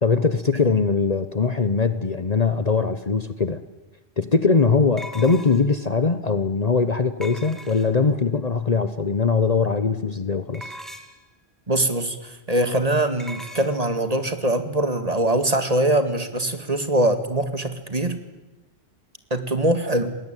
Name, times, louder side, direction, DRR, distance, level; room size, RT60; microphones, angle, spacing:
voice 1, 0.0-3.6 4.2-10.7, left 4 dB, 40° left, 11 dB, 1.0 m, -21 dB
sound 1, 3.4-3.5 5.0-5.8 7.2-8.1 10.5-11.3 13.2-13.7, equal, ahead, 2.4 m, -39 dB
voice 2, 11.7-18.2 19.3-20.1, right 1 dB, 35° right, 8 dB, 2.2 m, -23 dB
28.5 x 20.0 x 9.2 m, 1.1 s
omnidirectional pair, 1.1 m